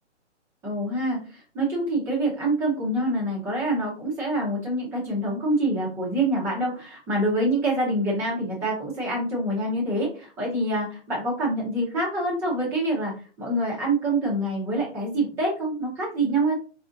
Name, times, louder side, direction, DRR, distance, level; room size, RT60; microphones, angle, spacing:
voice 1, 0.6-16.6, right 1 dB, 5° right, -5 dB, 0.6 m, -26 dB
4.8 x 2.5 x 2.4 m, 0.38 s
hypercardioid pair, 150°, 35 cm